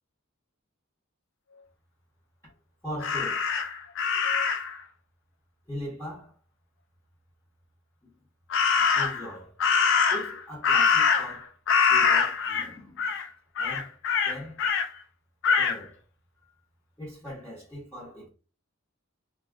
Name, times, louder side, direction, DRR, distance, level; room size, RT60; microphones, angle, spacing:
voice 1, 2.8-3.4 5.7-6.3 8.0-8.1 8.9-9.6 10.1-11.5 11.9-13.1 13.6-13.9 14.2-14.6 15.6-16.0 17.0-18.3, left 1 dB, 10° left, 1.0 m, -40 dB
Crow, 3.0-4.8 8.5-9.3 9.6-11.4 11.7-12.7 13.0-13.2 13.6-14.9 15.4-15.8, left 6 dB, 60° left, 0.3 m, -24 dB
2.3 x 2.3 x 2.3 m
head